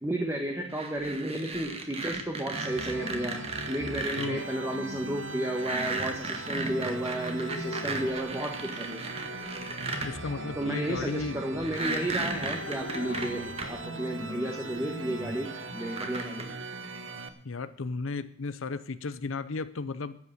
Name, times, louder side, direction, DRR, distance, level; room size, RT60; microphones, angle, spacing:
voice 1, 0.0-3.4 3.7-9.0 10.6-16.5, right 1 dB, 15° right, 1 dB, 1.4 m, -33 dB
sound 1, 0.7-4.3 5.5-10.1 11.6-13.7 14.8-14.9 15.8-16.4, right 3 dB, 30° right, 1.8 m, -35 dB
sound 2, 2.5-17.3, right 2 dB, 70° right, 1.3 m, -39 dB
voice 2, 4.2-4.5 10.0-11.4 17.4-20.2, left 3 dB, 80° left, 13 dB, 0.7 m, -34 dB
sound 3, 5.1-14.0, left 3 dB, 55° left, 0.9 m, -46 dB
13.0 x 8.6 x 7.9 m, 0.69 s
head